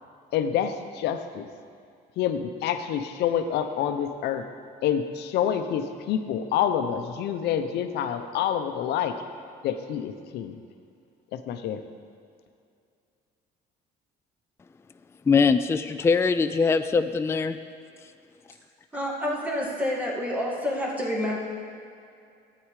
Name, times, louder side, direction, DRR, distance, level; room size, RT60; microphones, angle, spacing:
voice 1, 0.3-1.5 2.2-4.4 4.8-9.2 9.6-10.6 11.3-11.8, left 9 dB, 75° left, 8 dB, 0.8 m, -27 dB
voice 2, 15.3-17.6, left 5 dB, 15° left, 9 dB, 0.3 m, -22 dB
voice 3, 18.9-21.4, left 1 dB, 10° right, -3 dB, 2.3 m, -28 dB
12.0 x 8.7 x 4.9 m, 2.4 s
cardioid pair, 110°, 17 cm